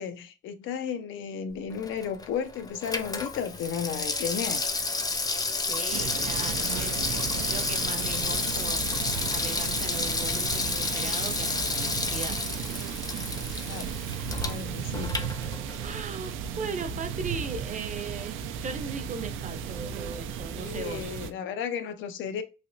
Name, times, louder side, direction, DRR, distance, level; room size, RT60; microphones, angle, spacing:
voice 1, 0.0-4.6 13.6-14.0 14.4-15.1 20.6-22.4, left 7 dB, 80° left, 0.5 m, -33 dB
Water tap faucet / Sink (filling or washing), 1.7-16.0 16.3-16.4, left 3 dB, 20° left, 0.4 m, -31 dB
voice 2, 5.6-8.8 9.3-12.4 15.8-21.1, right 4 dB, 40° right, 0.6 m, -38 dB
sound 1, 5.9-21.3, right 7 dB, 85° right, 0.4 m, -35 dB
3.3 x 2.8 x 2.6 m
cardioid pair, 90°, 20 cm